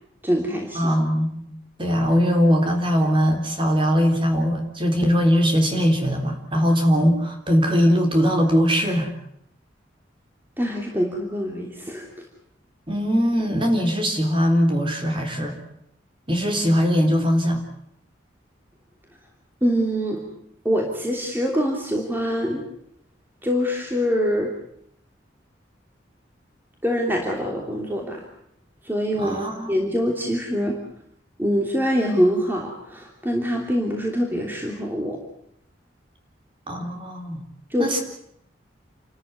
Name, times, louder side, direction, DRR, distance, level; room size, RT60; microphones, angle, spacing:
voice 1, 0.2-0.9 10.6-12.1 19.6-20.2 20.6-22.6 23.4-24.5 26.8-28.2 28.8-30.8 31.4-35.2 37.7-37.9, equal, 10° right, 0 dB, 3.0 m, -24 dB
voice 2, 0.7-1.5 1.8-9.1 12.9-15.5 16.3-17.6 29.2-29.7 36.7-37.4 37.8-38.0, equal, 25° right, 4 dB, 3.9 m, -20 dB
29.0 x 13.5 x 9.6 m, 0.72 s
head